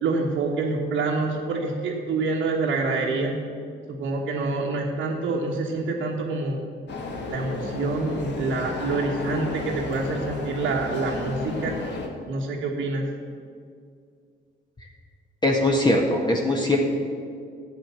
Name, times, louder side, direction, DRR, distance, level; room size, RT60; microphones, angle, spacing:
voice 1, 0.0-3.4 3.9-6.6 7.3-11.8 12.3-13.0, right 3 dB, 85° right, -5 dB, 1.4 m, -26 dB
sound 1, 6.9-12.1, left 3 dB, 60° left, 1.8 m, -33 dB
voice 2, 15.4-16.8, left 1 dB, 20° left, -1 dB, 1.6 m, -21 dB
11.5 x 8.0 x 7.0 m, 2.2 s
cardioid pair, 90°, 20 cm